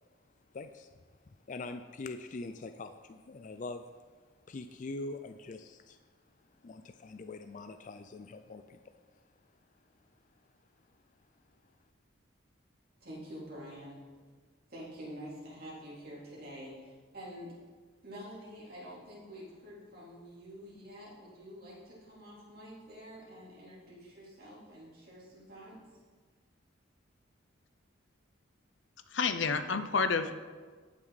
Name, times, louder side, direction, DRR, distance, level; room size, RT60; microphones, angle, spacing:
voice 1, 0.5-1.0 1.5-4.0 4.5-6.0 6.6-9.0, left 3 dB, 40° left, 8 dB, 0.4 m, -43 dB
voice 2, 13.0-14.0 14.7-17.5 18.0-25.8, equal, 50° right, -6 dB, 3.6 m, -47 dB
voice 3, 29.1-30.3, left 5 dB, 70° left, 10 dB, 0.7 m, -29 dB
18.0 x 6.3 x 4.1 m, 1.5 s
head